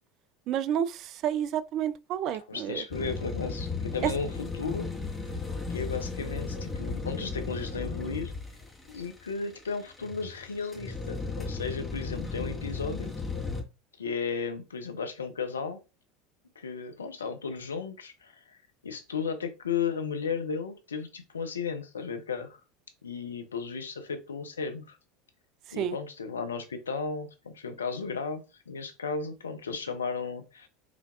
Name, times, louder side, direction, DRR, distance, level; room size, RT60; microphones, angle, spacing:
voice 1, 0.5-2.8 4.0-4.1 25.7-26.0, right 10 dB, 50° right, 0.4 m, -30 dB
voice 2, 2.3-4.9 5.7-8.3 8.9-13.1 14.0-15.8 16.6-18.6 18.8-22.6 23.0-25.0 25.7-30.7, left 5 dB, 85° left, 0.7 m, -34 dB
sound 1, 2.9-13.6, left 4 dB, 10° left, 1.8 m, -35 dB
5.0 x 3.4 x 2.5 m
hypercardioid pair, 75°, 0 cm